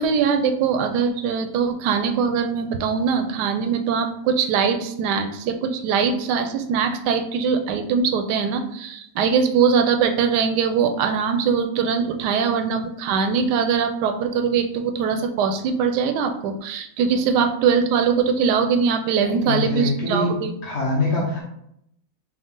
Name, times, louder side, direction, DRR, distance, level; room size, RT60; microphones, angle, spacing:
voice 1, 0.0-20.5, right 6 dB, 75° right, 6 dB, 1.1 m, -22 dB
voice 2, 19.2-20.3 20.6-21.4, left 2 dB, 45° left, -4 dB, 1.1 m, -24 dB
4.5 x 2.4 x 3.7 m, 0.73 s
omnidirectional pair, 1.8 m